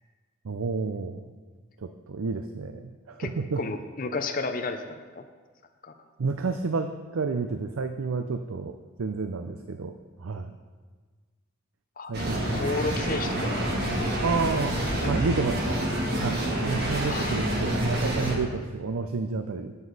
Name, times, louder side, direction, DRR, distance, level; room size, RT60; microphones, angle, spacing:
voice 1, 0.4-1.3 1.8-3.6 6.2-9.9 10.2-10.6 12.1-12.4 14.2-15.8 16.1-19.8, right 4 dB, 90° right, 8 dB, 0.5 m, -30 dB
voice 2, 3.6-5.3 5.8-5.9 12.0-14.1 14.8-14.9 17.1-17.4, left 3 dB, 40° left, 6 dB, 0.6 m, -33 dB
sound 1, 12.1-18.4, right 1 dB, 50° right, 1.7 m, -27 dB
12.0 x 8.0 x 4.0 m, 1.4 s
head